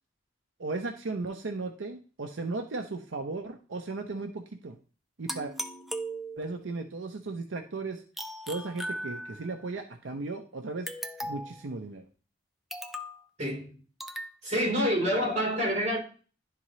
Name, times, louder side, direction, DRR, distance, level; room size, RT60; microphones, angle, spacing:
voice 1, 0.6-4.8 5.2-5.5 6.4-8.0 8.5-10.9 11.3-12.0, right 3 dB, 85° right, 0.6 m, -36 dB
sound 1, 5.3-6.7 8.2-9.6 10.9-11.6 12.7-13.2 14.0-14.4, right 1 dB, ahead, 0.4 m, -38 dB
voice 2, 13.4-13.8 14.4-16.0, equal, 35° right, 3.6 m, -27 dB
11.0 x 3.8 x 3.1 m
head